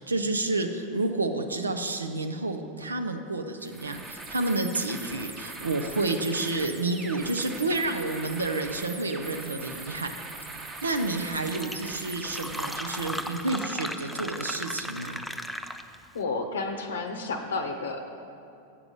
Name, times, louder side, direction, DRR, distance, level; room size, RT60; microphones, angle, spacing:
voice 1, 0.0-10.2 10.6-15.2, right 2 dB, 90° right, 6 dB, 0.5 m, -30 dB
sound 1, 3.6-13.5, right 3 dB, 25° right, 0.9 m, -41 dB
Fill (with liquid), 11.0-11.1 11.3-16.1, equal, ahead, 0.4 m, -36 dB
voice 2, 16.1-18.1, left 3 dB, 75° left, 5 dB, 0.7 m, -31 dB
8.2 x 5.9 x 5.3 m, 2.6 s
figure-of-eight pair, 90°, 0 cm